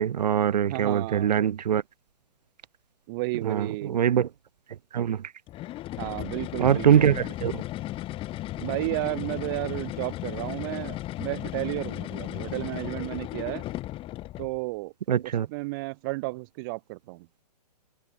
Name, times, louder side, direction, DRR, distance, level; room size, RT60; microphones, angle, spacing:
voice 1, 0.0-1.8 3.4-4.3 4.9-5.2 6.6-7.6 15.1-15.5, right 9 dB, 75° right, 0.5 m, -23 dB
voice 2, 0.7-1.3 3.1-4.0 6.0-7.2 8.6-13.7 14.4-14.9 15.2-17.3, right 25 dB, 35° right, 0.7 m, -33 dB
sound 1, 5.5-14.6, left 15 dB, 25° left, 4.1 m, -35 dB
hypercardioid pair, 125°, 21 cm